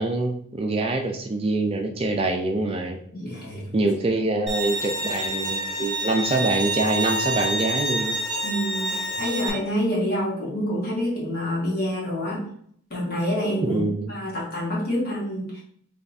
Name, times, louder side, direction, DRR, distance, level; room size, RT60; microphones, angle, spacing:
voice 1, 0.0-3.0 3.7-8.1 13.6-14.2, right 2 dB, 25° right, 4 dB, 0.3 m, -25 dB
voice 2, 3.1-3.8 8.4-12.5 12.9-13.8 14.1-15.6, equal, 45° left, -5 dB, 1.8 m, -27 dB
Bowed string instrument, 4.5-9.5, right 1 dB, 5° left, 1.3 m, -27 dB
3.4 x 3.3 x 4.0 m, 0.64 s
head